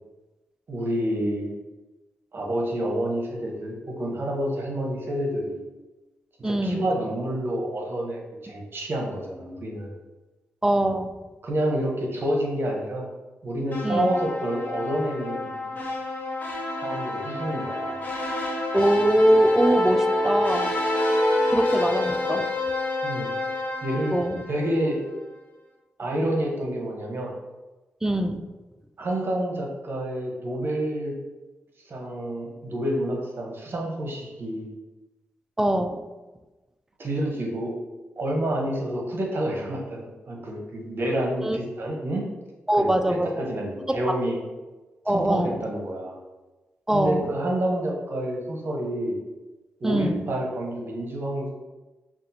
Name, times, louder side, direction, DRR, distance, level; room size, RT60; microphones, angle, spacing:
voice 1, 0.7-1.5 2.3-5.6 6.4-9.9 11.4-13.1 13.4-15.8 16.7-18.0 23.0-23.3 23.8-24.2 24.5-25.0 26.0-27.3 29.0-31.2 31.8-34.7 37.0-37.7 38.2-42.2 42.8-44.4 45.1-46.2 46.9-49.2 49.8-51.5, right 1 dB, 50° right, 0 dB, 0.9 m, -28 dB
voice 2, 6.4-6.9 10.6-11.1 13.8-14.1 18.7-20.7 21.5-22.5 24.1-24.4 28.0-28.5 35.6-36.0 41.4-41.6 42.7-43.3 43.9-44.2 45.1-45.6 46.9-47.3 49.8-50.3, right 1 dB, 10° right, 8 dB, 0.3 m, -23 dB
sound 1, 13.7-24.9, left 1 dB, 40° left, 1.1 m, -27 dB
5.4 x 2.4 x 2.7 m, 1.1 s
cardioid pair, 60°, 5 cm